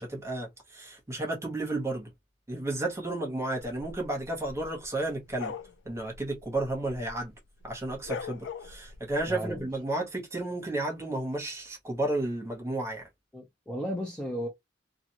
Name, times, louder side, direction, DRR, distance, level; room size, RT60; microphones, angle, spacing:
voice 1, 0.0-2.1 2.5-5.5 5.8-7.3 7.6-13.1, right 2 dB, 15° right, 1.1 m, -32 dB
sound 1, 3.6-7.3 7.6-9.6, left 5 dB, 70° left, 0.3 m, -42 dB
voice 2, 9.3-9.7 13.3-14.5, equal, 5° left, 0.6 m, -34 dB
2.4 x 2.4 x 2.8 m
head